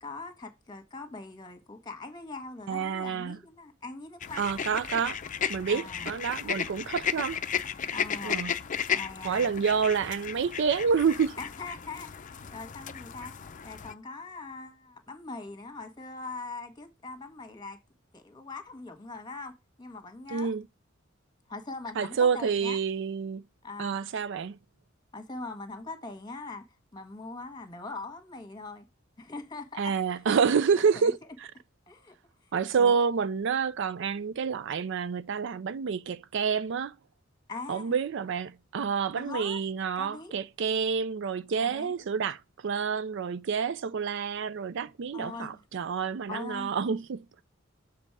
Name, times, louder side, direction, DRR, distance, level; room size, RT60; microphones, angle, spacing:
voice 1, 0.0-4.6 5.7-6.1 6.4-6.7 7.9-9.6 11.4-13.3 13.6-17.8 18.1-20.5 21.5-22.8 23.6-24.0 25.1-26.6 26.9-28.9 29.2-29.9 30.9-31.3 31.9-32.1 32.4-32.5 32.8-33.0 37.5-37.9 39.1-39.6 40.0-40.3 41.6-42.1 45.1-45.6 46.3-46.7, left 3 dB, 20° left, 1.7 m, -41 dB
voice 2, 2.7-3.4 4.4-5.2 5.5-7.4 8.2-8.5 9.2-11.3 20.3-20.6 22.0-23.4 23.8-24.6 29.8-31.5 32.5-37.0 37.7-47.3, right 6 dB, 65° right, 0.4 m, -28 dB
sound 1, 4.2-13.9, left 7 dB, 40° left, 0.6 m, -34 dB
7.6 x 4.1 x 4.7 m
head